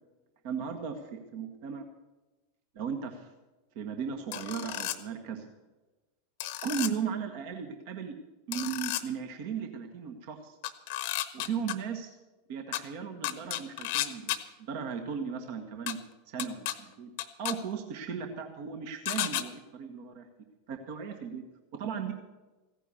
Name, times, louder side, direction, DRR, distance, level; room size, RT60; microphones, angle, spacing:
voice 1, 0.4-1.9 2.7-3.3 3.7-5.4 6.6-8.1 8.5-10.6 11.3-12.2 12.5-16.0 16.3-17.1 17.4-20.3 20.7-21.4 21.7-22.1, right 6 dB, 50° right, 6 dB, 1.4 m, -36 dB
sound 1, 4.3-5.0 6.4-6.9 8.5-9.0 10.6-11.7 12.7-12.8 13.2-14.4 15.9-16.0 16.4-16.7 17.2-17.5 19.1-19.4, left 15 dB, 55° left, 0.9 m, -32 dB
15.5 x 10.0 x 7.1 m, 1.1 s
figure-of-eight pair, 85°, 0 cm